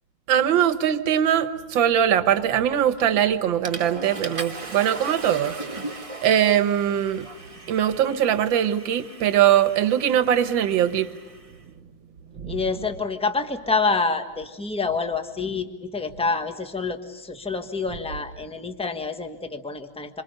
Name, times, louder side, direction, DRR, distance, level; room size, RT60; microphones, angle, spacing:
voice 1, 0.3-5.6 6.2-7.3 7.7-11.1 12.4-12.6, right 10 dB, 65° right, 11 dB, 1.8 m, -21 dB
Water / Toilet flush, 3.0-3.2 3.6-11.5, right 2 dB, 20° right, 0.9 m, -38 dB
voice 2, 12.5-20.2, left 4 dB, 5° left, 6 dB, 1.0 m, -27 dB
27.0 x 26.5 x 6.7 m, 1.1 s
omnidirectional pair, 2.4 m